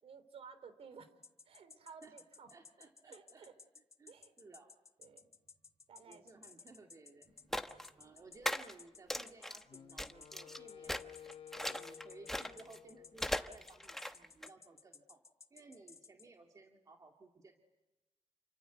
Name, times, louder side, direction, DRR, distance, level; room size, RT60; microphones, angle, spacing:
voice 1, 0.0-1.1 1.4-2.5 2.8-3.5 4.1-4.4 5.0-5.3 5.9-6.3 6.6-6.7 7.2-8.1, right 6 dB, 70° right, 12 dB, 3.2 m, -56 dB
sound 1, 1.2-16.3, left 5 dB, 30° left, 1.4 m, -57 dB
voice 2, 2.5-3.5 4.0-4.7 6.0-7.3 8.0-11.0 11.5-15.2 15.5-17.5, right 3 dB, 35° right, 2 dB, 2.2 m, -58 dB
sound 2, 7.5-7.9 8.5-8.7 9.1-9.6 10.0-10.6 10.9-12.8 13.2-14.5, left 1 dB, 5° left, 1.0 m, -38 dB
Wind instrument woodwind instrument, 9.7-13.9, left 8 dB, 60° left, 1.1 m, -55 dB
28.5 x 25.0 x 8.1 m, 1.1 s
wide cardioid pair, 150°, 11 cm